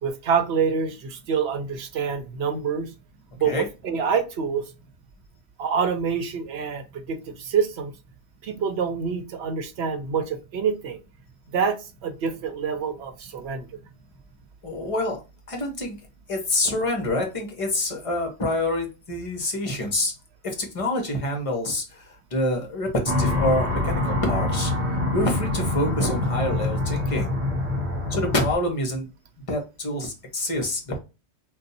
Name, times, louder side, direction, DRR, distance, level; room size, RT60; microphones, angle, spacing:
voice 1, 0.0-2.9 3.4-4.6 5.6-7.9 8.4-11.0 11.5-11.8 12.0-13.7, right 6 dB, 75° right, 7 dB, 0.9 m, -26 dB
voice 2, 14.6-15.2 15.5-16.0 16.3-20.1 20.6-21.8 22.3-22.9 23.2-24.7 25.1-27.3 28.1-29.1 29.5-31.0, left 1 dB, 35° left, 3 dB, 1.0 m, -26 dB
sound 1, 23.1-28.6, left 2 dB, 50° right, 0.8 m, -25 dB
2.5 x 2.3 x 4.0 m, 0.28 s
omnidirectional pair, 1.1 m